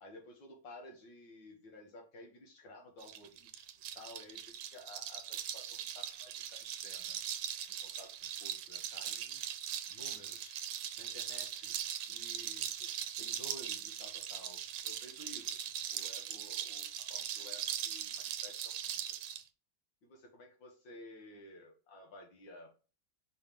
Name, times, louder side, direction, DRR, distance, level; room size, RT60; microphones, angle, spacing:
voice 1, 0.0-3.6 3.9-7.2 7.8-9.4 9.9-10.6 11.0-19.3 20.0-22.7, left 1 dB, 65° left, 2 dB, 2.2 m, -54 dB
sound 1, 3.0-19.4, right 10 dB, 80° right, 1.4 m, -40 dB
5.3 x 3.6 x 5.3 m, 0.36 s
omnidirectional pair, 2.1 m